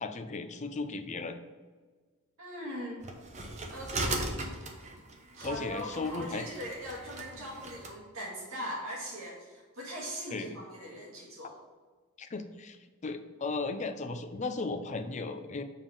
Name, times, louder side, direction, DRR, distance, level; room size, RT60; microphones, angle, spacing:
voice 1, 0.0-1.4 4.3-4.4 5.4-6.5 10.3-10.5 12.2-12.8 13.0-15.6, left 3 dB, 35° left, 7 dB, 0.5 m, -36 dB
voice 2, 2.4-3.1 3.7-4.3 5.4-11.6, equal, 70° right, -4 dB, 1.9 m, -40 dB
sound 1, 3.0-7.9, right 2 dB, 35° right, 0.9 m, -38 dB
7.1 x 3.6 x 5.4 m, 1.4 s
head